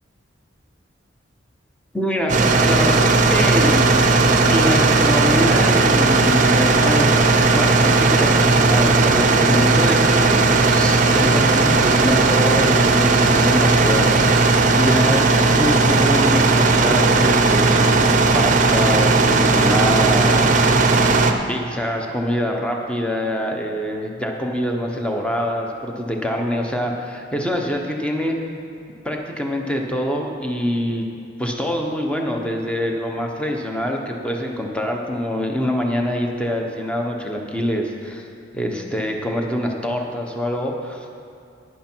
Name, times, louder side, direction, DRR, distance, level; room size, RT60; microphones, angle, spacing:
voice 1, 1.9-4.0 4.5-14.1 14.3-14.4 14.8-17.8 18.3-20.6 21.5-28.4 29.0-31.0 31.4-38.3 38.5-41.1, equal, 5° left, 1 dB, 0.9 m, -25 dB
sound 1, 2.3-21.3, right 3 dB, 40° right, 0.6 m, -16 dB
11.5 x 9.5 x 4.5 m, 2.5 s
head